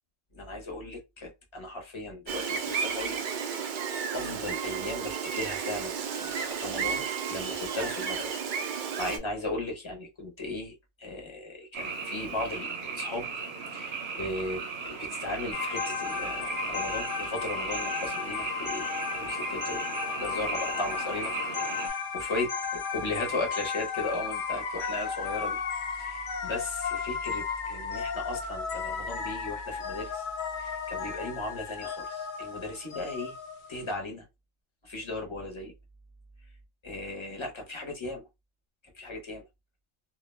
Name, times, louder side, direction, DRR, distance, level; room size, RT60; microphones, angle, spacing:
voice 1, 0.3-3.6 4.1-13.3 13.7-21.3 21.6-22.5 22.9-25.6 26.0-30.3 30.6-33.4 33.7-34.2 34.8-35.7 36.8-38.3 38.8-39.4, left 2 dB, 30° left, 0.6 m, -37 dB
Gull seagull, 2.3-9.2, right 6 dB, 80° right, 0.4 m, -32 dB
Frog, 11.7-21.9, right 5 dB, 60° right, 0.8 m, -37 dB
sound 1, 15.5-33.9, left 6 dB, 70° left, 0.4 m, -34 dB
2.2 x 2.1 x 3.1 m
omnidirectional pair, 1.4 m